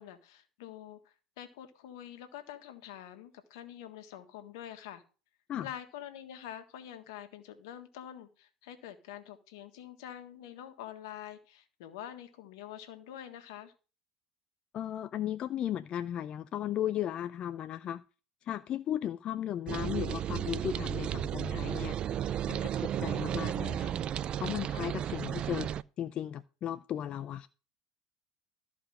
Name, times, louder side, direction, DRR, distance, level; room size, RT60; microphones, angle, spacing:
voice 1, 0.0-5.0 5.6-13.7, left 11 dB, 75° left, 1.6 m, -46 dB
voice 2, 14.7-18.0 18.4-23.9 24.4-25.7 26.0-27.5, left 11 dB, 50° left, 0.5 m, -36 dB
sound 1, 19.7-25.8, right 10 dB, 45° right, 0.4 m, -34 dB
13.5 x 5.0 x 6.2 m
hypercardioid pair, 80°, 2 cm